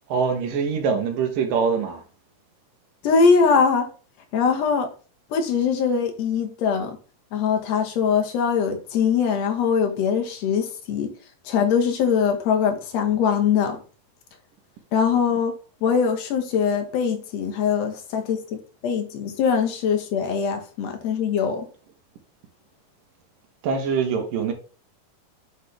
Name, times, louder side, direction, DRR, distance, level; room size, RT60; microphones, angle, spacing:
voice 1, 0.1-2.0 23.6-24.5, right 5 dB, 75° right, 2.7 m, -23 dB
voice 2, 3.0-3.9 4.3-4.9 5.3-7.0 7.3-11.1 11.5-13.8 14.9-15.5 15.8-21.7, left 6 dB, 65° left, 1.8 m, -22 dB
9.7 x 4.1 x 3.3 m
omnidirectional pair, 4.0 m